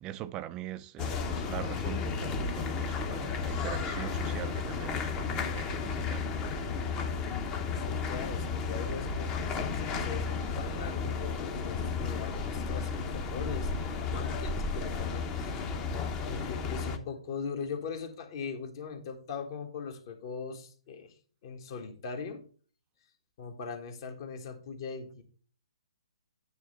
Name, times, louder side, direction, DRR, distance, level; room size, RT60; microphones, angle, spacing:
voice 1, 0.0-6.3, right 13 dB, 20° right, 0.4 m, -42 dB
sound 1, 1.0-17.0, left 5 dB, 20° left, 0.8 m, -33 dB
voice 2, 7.8-15.9 16.2-21.1 21.4-22.4 23.4-25.2, left 5 dB, 45° left, 1.6 m, -40 dB
9.3 x 3.2 x 6.7 m
hypercardioid pair, 140°, 3 cm